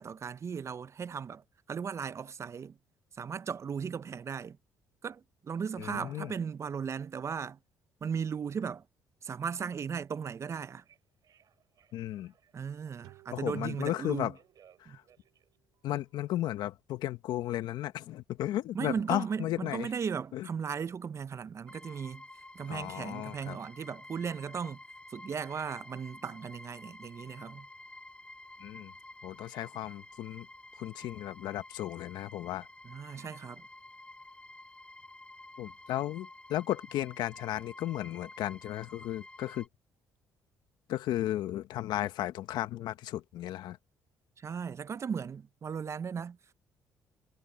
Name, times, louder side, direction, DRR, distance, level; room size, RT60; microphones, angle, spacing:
voice 1, 0.0-2.8 3.2-4.6 5.0-7.6 8.0-8.8 9.2-10.8 12.5-14.3 14.9-15.0 18.7-22.2 22.5-24.8 25.1-27.7 32.8-33.6 44.4-46.4, right 6 dB, 40° right, 0.6 m, -37 dB
voice 2, 5.8-6.3 11.9-12.3 13.3-14.3 14.8-15.0 15.8-19.9 20.3-20.5 22.7-23.6 28.6-28.9 29.2-30.5 30.8-32.7 35.6-39.7 40.9-43.8, left 13 dB, 75° left, 1.2 m, -34 dB
Telephone, 10.7-13.2 14.0-16.4, right 9 dB, 60° right, 7.8 m, -65 dB
sound 1, 13.0-16.4, right 21 dB, 90° right, 6.9 m, -62 dB
sound 2, 21.7-39.7, left 2 dB, 15° left, 4.9 m, -51 dB
supercardioid pair, 75°, 7 cm